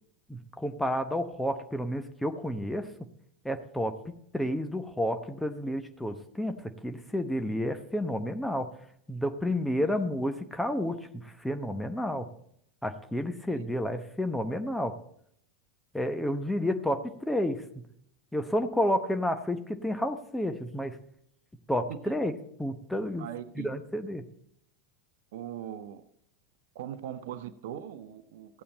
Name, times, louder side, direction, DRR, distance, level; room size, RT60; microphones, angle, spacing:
voice 1, 0.3-2.9 3.4-8.7 9.1-11.0 11.2-12.3 12.8-14.9 15.9-17.6 18.3-21.0 21.7-22.3 22.6-23.3 23.6-24.2, equal, 5° left, 8 dB, 0.9 m, -30 dB
voice 2, 23.2-23.7 25.3-26.0 26.7-28.6, right 10 dB, 60° right, 13 dB, 0.7 m, -40 dB
14.5 x 8.5 x 4.2 m, 0.71 s
figure-of-eight pair, 85°, 0 cm